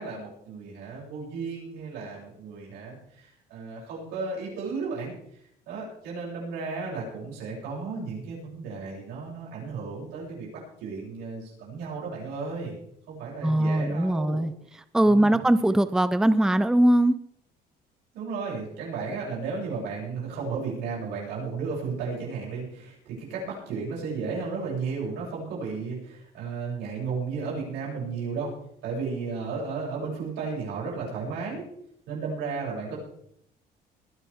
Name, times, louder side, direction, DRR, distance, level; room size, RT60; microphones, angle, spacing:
voice 1, 0.0-10.5 10.8-12.7 13.1-14.4 15.0-15.4 18.1-28.5 28.8-31.7 32.1-33.0, right 4 dB, 90° right, -4 dB, 7.3 m, -34 dB
voice 2, 13.4-14.5 14.9-17.2, right 1 dB, 5° right, 13 dB, 0.6 m, -21 dB
21.5 x 11.5 x 3.6 m, 0.72 s
cardioid pair, 110°, 17 cm